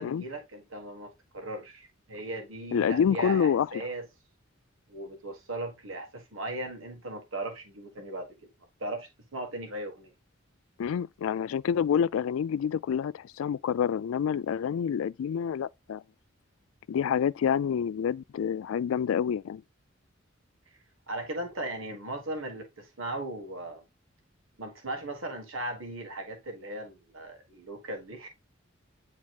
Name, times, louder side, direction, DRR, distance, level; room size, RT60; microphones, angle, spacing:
voice 1, 0.0-4.1 4.9-8.3 8.8-10.1 21.1-23.8 24.6-28.3, right 1 dB, 80° right, 1.7 m, -37 dB
voice 2, 2.7-3.9 10.8-16.0 16.9-19.6, left 7 dB, 85° left, 0.3 m, -27 dB
9.7 x 4.1 x 2.4 m
head